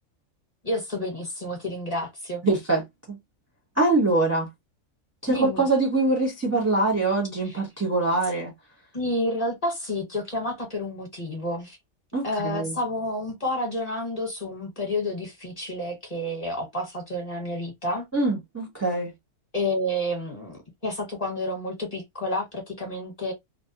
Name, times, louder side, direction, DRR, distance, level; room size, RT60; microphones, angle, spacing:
voice 1, 0.6-2.4 5.3-5.7 7.5-7.6 8.9-11.8 12.2-18.0 19.5-23.3, left 1 dB, 30° left, 1.1 m, -30 dB
voice 2, 2.4-3.2 3.8-4.5 5.2-8.5 12.1-12.8 18.1-19.1, right 2 dB, 15° right, 0.6 m, -24 dB
2.6 x 2.1 x 2.6 m
omnidirectional pair, 1.4 m